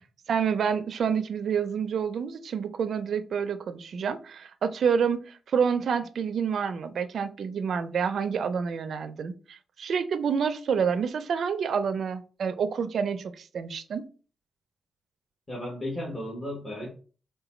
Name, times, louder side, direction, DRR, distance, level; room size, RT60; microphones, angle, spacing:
voice 1, 0.3-14.0, right 6 dB, 75° right, 0.4 m, -28 dB
voice 2, 15.5-16.9, left 1 dB, 20° left, 1.4 m, -34 dB
3.8 x 2.2 x 4.2 m
cardioid pair, 90°, 0 cm